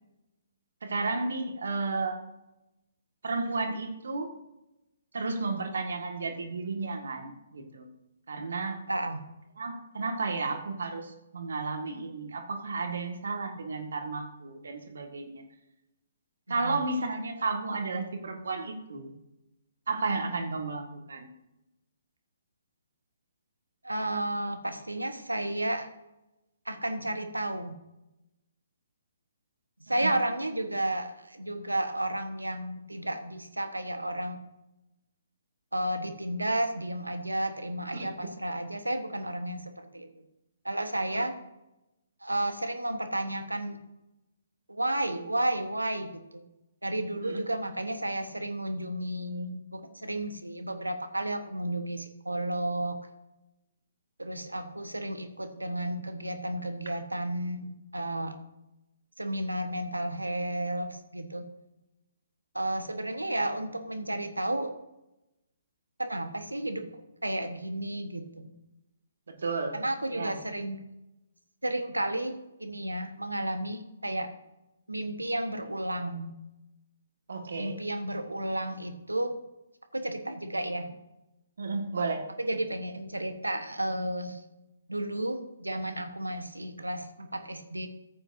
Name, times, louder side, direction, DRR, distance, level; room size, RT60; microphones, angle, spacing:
voice 1, 0.8-2.2 3.2-4.3 5.1-7.9 8.3-8.8 9.6-15.4 16.5-19.1 19.9-21.3 29.9-30.1 37.9-38.1 41.1-41.3 47.2-47.4 69.3-69.8 70.1-70.4 77.3-77.8 81.6-82.3, right 3 dB, 65° right, 4 dB, 1.8 m, -33 dB
voice 2, 8.9-9.2 16.5-16.8 20.4-20.6 23.8-25.9 26.6-27.8 29.9-34.4 35.7-40.1 40.6-41.3 42.2-43.8 44.7-46.4 46.8-53.0 54.2-58.4 59.2-61.5 62.5-64.7 66.0-66.9 67.2-68.5 69.7-70.8 71.6-74.3 74.9-76.3 77.6-79.4 79.9-81.0 82.4-84.4 84.9-87.9, right 1 dB, 85° right, 8 dB, 1.3 m, -32 dB
14.0 x 8.9 x 2.7 m, 0.93 s
figure-of-eight pair, 130°, 0 cm